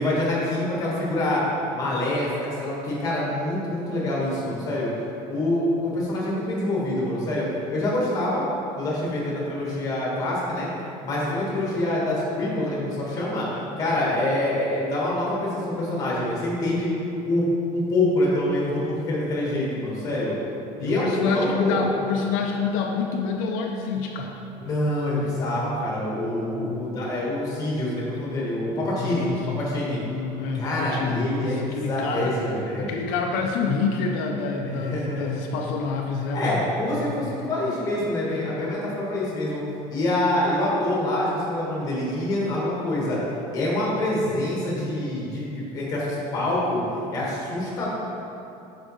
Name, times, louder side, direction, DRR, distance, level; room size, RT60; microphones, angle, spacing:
voice 1, 0.0-1.4 1.7-4.9 5.3-8.4 8.8-10.7 11.0-13.5 13.8-16.9 17.3-17.4 17.7-20.3 20.8-21.8 24.6-30.0 30.5-32.9 34.6-35.3 36.3-39.6 39.9-43.2 43.5-46.8 47.1-47.9, left 1 dB, 25° left, -5 dB, 1.3 m, -26 dB
voice 2, 20.8-24.3 26.5-26.8 29.0-29.6 30.0-32.4 32.8-36.6 37.1-37.3, left 4 dB, 90° left, 2 dB, 0.5 m, -27 dB
6.5 x 5.0 x 3.1 m, 2.8 s
cardioid pair, 175°, 13 cm